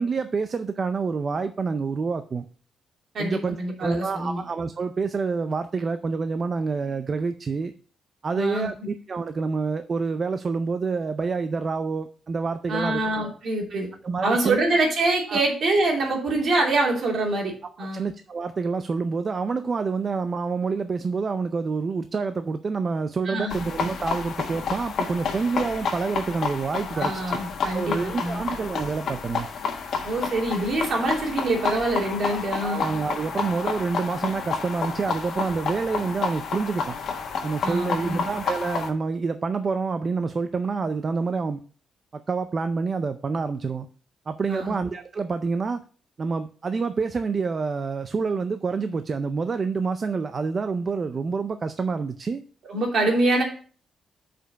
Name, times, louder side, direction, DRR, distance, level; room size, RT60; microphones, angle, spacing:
voice 1, 0.0-2.5 3.2-7.7 8.2-13.3 14.0-14.6 15.3-15.4 17.9-27.4 27.7-29.5 32.3-37.0 37.4-41.6 42.1-43.9 44.3-45.8 46.2-52.4, right 4 dB, 35° right, 9 dB, 0.4 m, -27 dB
voice 2, 3.1-4.4 8.3-8.7 12.7-13.9 14.2-17.5 17.8-18.1 23.3-23.5 27.0-28.4 30.0-32.8 37.6-38.2 44.5-44.7 52.7-53.4, right 2 dB, 55° right, 0 dB, 2.7 m, -25 dB
sound 1, 23.5-38.9, left 5 dB, 60° left, 1.4 m, -30 dB
6.7 x 5.1 x 5.2 m, 0.42 s
cardioid pair, 135°, 0 cm